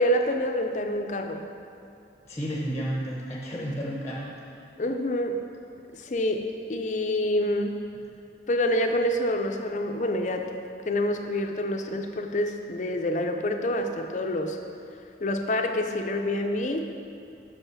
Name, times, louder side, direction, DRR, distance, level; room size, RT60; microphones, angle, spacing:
voice 1, 0.0-1.5 4.8-5.4 6.0-6.4 6.7-7.8 8.5-10.5 10.9-14.6 15.2-16.9, left 1 dB, 40° left, 5 dB, 0.5 m, -27 dB
voice 2, 2.2-4.6, equal, 15° left, -3 dB, 0.8 m, -32 dB
6.4 x 5.5 x 6.1 m, 2.6 s
head